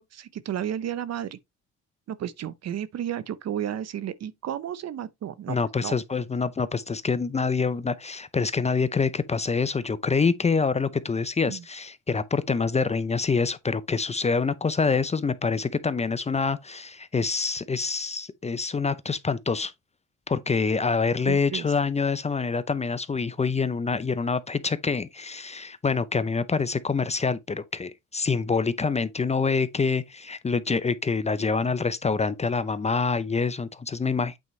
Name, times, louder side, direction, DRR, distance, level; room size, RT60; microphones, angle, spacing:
voice 1, 0.0-1.4 2.1-5.9 11.5-11.6 21.2-21.7, right 10 dB, 60° right, 0.7 m, -32 dB
voice 2, 5.5-19.7 20.3-34.3, left 4 dB, 20° left, 0.5 m, -26 dB
8.5 x 4.5 x 3.1 m
cardioid pair, 90°, 30 cm